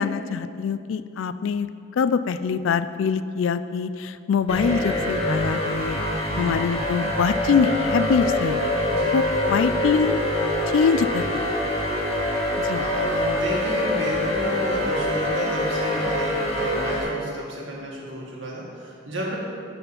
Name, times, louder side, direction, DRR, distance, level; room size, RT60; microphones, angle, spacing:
voice 1, 0.0-1.7 1.9-6.0 6.4-8.6 9.1-10.2 10.7-11.5 12.6-12.8, left 6 dB, 70° left, 13 dB, 0.3 m, -24 dB
sound 1, 4.5-17.0, left 1 dB, 30° left, 1.9 m, -25 dB
voice 2, 6.3-6.6 8.9-9.2 12.7-19.3, equal, 65° right, -3 dB, 1.9 m, -32 dB
9.4 x 4.3 x 7.1 m, 2.4 s
head